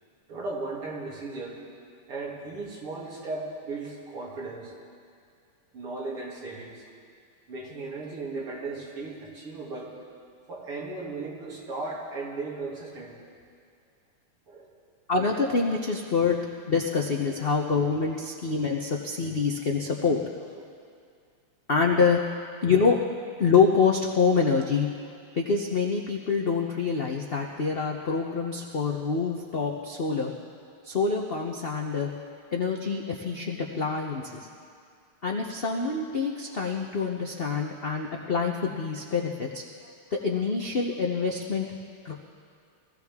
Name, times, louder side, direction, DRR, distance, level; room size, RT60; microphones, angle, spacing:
voice 1, 0.3-1.6 2.1-4.7 5.7-6.9 7.5-10.0 10.5-13.2 14.5-14.7 20.5-20.7, right 3 dB, 85° right, -4 dB, 3.4 m, -36 dB
voice 2, 15.1-16.4 16.7-20.5 21.7-22.2 22.6-23.0 23.4-24.9 25.3-30.3 30.8-32.1 32.5-34.5 35.2-41.7 42.0-42.1, left 5 dB, 90° left, 0 dB, 0.5 m, -26 dB
22.5 x 15.5 x 3.6 m, 2.3 s
omnidirectional pair, 2.4 m